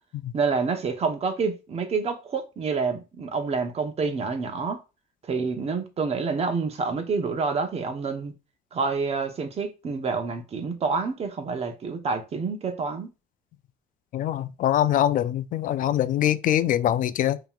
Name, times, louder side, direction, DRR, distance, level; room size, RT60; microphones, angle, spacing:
voice 1, 0.3-4.8 5.3-8.3 8.7-13.1, right 4 dB, 40° right, 0.9 m, -28 dB
voice 2, 14.1-17.4, left 11 dB, 55° left, 0.4 m, -23 dB
5.4 x 2.9 x 2.4 m
cardioid pair, 110°, 17 cm